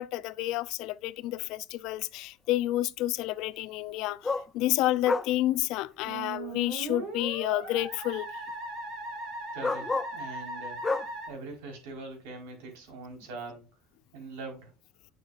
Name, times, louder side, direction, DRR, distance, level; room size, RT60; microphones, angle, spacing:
voice 1, 0.0-8.3, left 15 dB, 65° left, 0.5 m, -30 dB
sound 1, 1.4-1.5 4.2-4.5 5.0-5.3 6.5-6.6 8.4-8.5 9.6-10.2 10.8-11.1 13.2-13.3, left 3 dB, 15° left, 0.5 m, -30 dB
Musical instrument, 6.0-11.3, right 2 dB, 60° right, 3.4 m, -38 dB
voice 2, 9.5-10.9 11.3-13.7 14.1-14.7, right 3 dB, 90° right, 4.3 m, -42 dB
9.4 x 6.7 x 2.5 m
cardioid pair, 135°, 0 cm